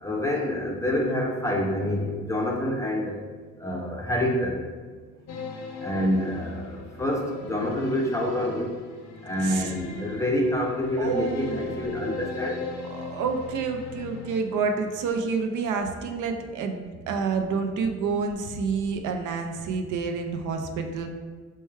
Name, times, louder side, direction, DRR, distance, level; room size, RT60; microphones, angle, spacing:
voice 1, 0.0-3.2 3.6-4.6 5.8-8.7 9.2-12.6, left 1 dB, 10° left, 0 dB, 0.5 m, -27 dB
sound 1, 5.3-15.1, left 4 dB, 65° left, 0.5 m, -40 dB
voice 2, 9.4-9.7 11.0-12.2 12.9-21.1, right 5 dB, 80° right, 5 dB, 0.5 m, -29 dB
4.3 x 2.2 x 3.2 m, 1.5 s
cardioid pair, 90°, 30 cm